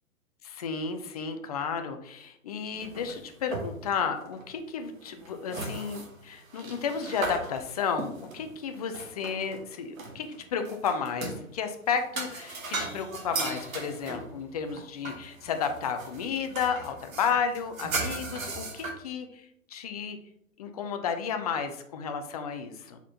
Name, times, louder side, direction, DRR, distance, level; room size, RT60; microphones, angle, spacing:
voice 1, 0.4-20.2 20.6-23.0, left 6 dB, 30° left, 7 dB, 0.4 m, -32 dB
sound 1, 2.7-4.0 4.3-4.4 5.0-9.6 10.0-11.4 11.9-18.9, right 3 dB, 75° right, 1.1 m, -37 dB
4.2 x 4.0 x 2.8 m, 0.74 s
figure-of-eight pair, 110°, 41 cm